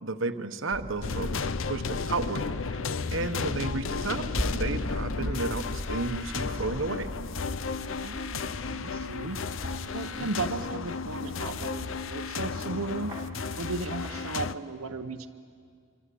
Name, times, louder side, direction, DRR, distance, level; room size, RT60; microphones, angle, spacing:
voice 1, 0.0-2.8 3.1-7.1 10.2-10.3, right 3 dB, 65° right, 8 dB, 1.1 m, -33 dB
sound 1, 0.7-14.3, equal, 15° right, 1.7 m, -40 dB
sound 2, 1.0-14.5, left 4 dB, 65° left, 0.7 m, -33 dB
voice 2, 8.0-9.4 9.9-13.1 13.6-15.3, right 3 dB, 85° right, 5 dB, 0.9 m, -35 dB
27.0 x 24.5 x 8.5 m, 2.1 s
head